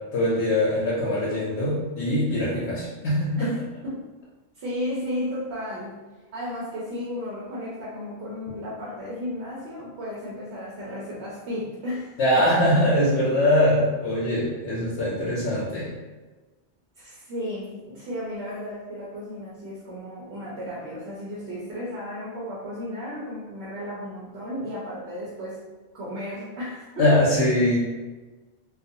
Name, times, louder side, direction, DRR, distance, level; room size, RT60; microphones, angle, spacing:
voice 1, 0.1-3.5 12.2-15.9 27.0-27.8, left 1 dB, 80° left, -7 dB, 0.9 m, -22 dB
voice 2, 4.6-6.0 6.3-12.1 17.0-25.6 25.9-27.1, left 1 dB, 80° right, -7 dB, 1.0 m, -34 dB
2.4 x 2.3 x 2.6 m, 1.3 s
omnidirectional pair, 1.1 m